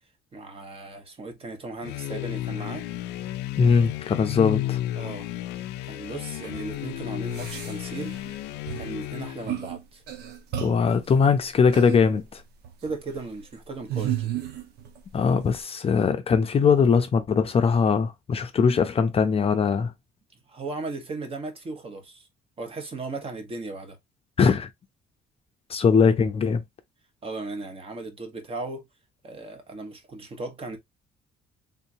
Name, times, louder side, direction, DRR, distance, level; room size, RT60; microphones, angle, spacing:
voice 1, 0.3-2.9 4.9-5.3 5.8-8.2 8.7-10.0 12.8-14.3 20.5-22.3 22.6-24.0 27.2-28.8 29.2-30.8, right 3 dB, 35° right, 1.3 m, -36 dB
sound 1, 1.8-9.6, left 14 dB, 85° left, 0.4 m, -33 dB
voice 2, 3.6-4.8 10.6-12.4 15.1-19.9 24.4-24.7 25.7-26.6, left 6 dB, 35° left, 0.6 m, -21 dB
sound 2, 6.4-6.6 7.3-8.4 8.7-9.0 9.4-9.8 10.1-11.0 11.7-12.0 12.6-13.0 13.9-15.0 15.3-15.4, right 11 dB, 75° right, 0.9 m, -33 dB
3.7 x 2.8 x 2.7 m
cardioid pair, 110°, 17 cm